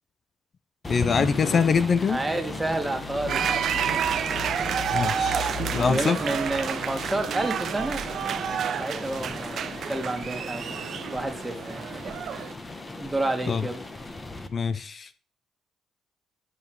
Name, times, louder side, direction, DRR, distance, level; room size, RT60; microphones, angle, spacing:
sound 1, 0.8-14.5, left 3 dB, 25° left, 1.1 m, -36 dB
voice 1, 0.9-2.2 4.9-6.2 13.5-13.7 14.5-15.1, left 5 dB, 45° left, 14 dB, 0.4 m, -24 dB
sound 2, 1.1-5.2 5.5-5.9 6.5-6.6 7.3-10.0 11.9-12.4, left 5 dB, 85° left, 1.6 m, -41 dB
voice 2, 2.1-3.6 3.9-4.0 5.7-8.1 8.8-11.9 13.0-13.8, right 2 dB, 15° right, 4 dB, 1.7 m, -30 dB
sound 3, 3.3-12.5, right 8 dB, 65° right, 0.5 m, -30 dB
11.0 x 5.5 x 4.5 m, 0.43 s
cardioid pair, 90°, 0 cm